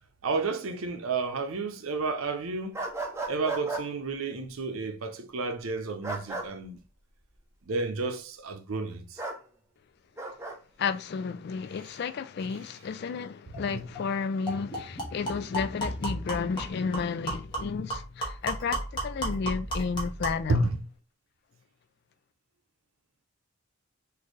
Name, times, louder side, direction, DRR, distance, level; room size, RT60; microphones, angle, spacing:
voice 1, 0.2-2.8 3.3-6.8 7.7-9.2 13.6-13.9 20.5-20.9, right 3 dB, 75° right, 0.7 m, -31 dB
sound 1, 2.7-3.8 6.0-6.5 9.2-9.4 10.2-10.6, right 3 dB, 15° right, 0.6 m, -34 dB
voice 2, 10.8-20.6, left 5 dB, 50° left, 0.3 m, -32 dB
sound 2, 13.5-13.6 13.9-14.1 14.5-20.5, right 1 dB, 20° left, 1.2 m, -34 dB
4.2 x 2.7 x 3.1 m
head